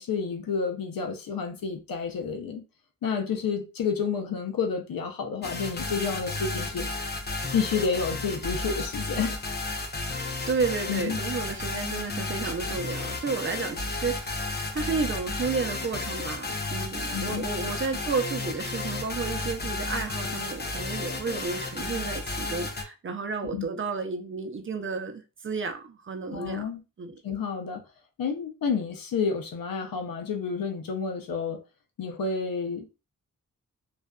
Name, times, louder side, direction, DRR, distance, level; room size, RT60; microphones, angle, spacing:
voice 1, 0.0-2.6 3.0-6.9 7.5-9.4 10.9-11.2 17.1-17.5 23.5-23.7 26.3-26.8 27.2-27.8 28.2-31.6 32.0-32.9, left 5 dB, 80° left, 0.6 m, -30 dB
sound 1, 5.4-22.8, left 3 dB, 30° left, 0.6 m, -33 dB
voice 2, 10.5-26.7 27.0-27.2, right 4 dB, 35° right, 0.6 m, -32 dB
2.5 x 2.3 x 2.2 m
cardioid pair, 50°, 34 cm